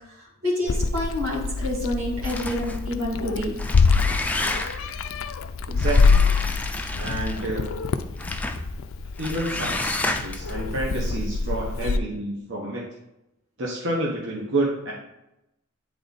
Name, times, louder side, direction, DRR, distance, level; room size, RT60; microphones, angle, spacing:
voice 1, 0.0-3.6, left 1 dB, 85° right, -4 dB, 2.7 m, -28 dB
Meow, 0.7-12.0, left 4 dB, 65° left, 0.4 m, -25 dB
sound 1, 2.2-2.9 3.5-4.9 5.8-7.5 8.2-8.6 9.2-10.5, left 2 dB, 5° left, 0.4 m, -30 dB
voice 2, 5.7-6.2 7.0-7.8 9.2-12.8 13.6-14.9, right 1 dB, 60° right, -3 dB, 1.1 m, -29 dB
8.9 x 3.5 x 4.1 m, 0.89 s
head